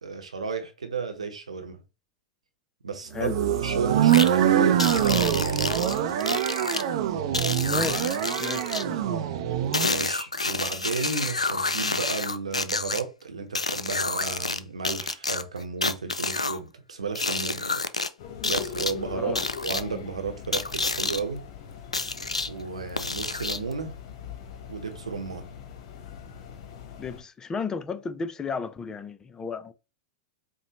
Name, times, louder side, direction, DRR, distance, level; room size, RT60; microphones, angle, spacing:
voice 1, 0.0-1.8 2.8-5.9 9.8-17.8 18.4-21.5 22.5-24.0 24.7-25.5, right 5 dB, 80° right, 0.9 m, -33 dB
sound 1, 3.1-10.0, right 10 dB, 55° right, 0.5 m, -24 dB
sound 2, 4.1-4.3 4.8-6.8 7.3-8.8 9.7-13.0 13.5-14.6 14.8-16.6 17.1-18.1 18.4-18.9 19.3-19.8 20.5-21.2 21.9-22.5 23.0-23.7, left 3 dB, 90° left, 0.3 m, -28 dB
voice 2, 7.7-9.3 19.2-19.4 27.0-29.7, left 5 dB, 20° left, 0.4 m, -34 dB
sound 3, 18.2-27.2, left 7 dB, 50° left, 0.8 m, -41 dB
4.9 x 2.1 x 2.9 m
figure-of-eight pair, 95°, 3 cm